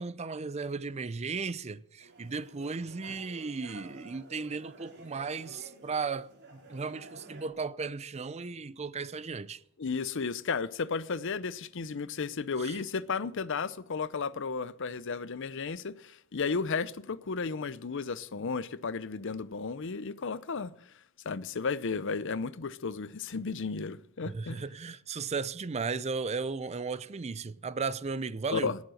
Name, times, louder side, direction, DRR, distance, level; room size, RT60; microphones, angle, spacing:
voice 1, 0.0-9.6 12.6-12.8 24.2-28.7, right 4 dB, 30° right, 0.5 m, -35 dB
sound 1, 2.0-7.5, right 2 dB, 55° right, 3.5 m, -52 dB
voice 2, 9.8-20.7 21.2-24.7 28.5-28.8, left 5 dB, 60° left, 0.6 m, -33 dB
18.0 x 7.3 x 6.4 m
head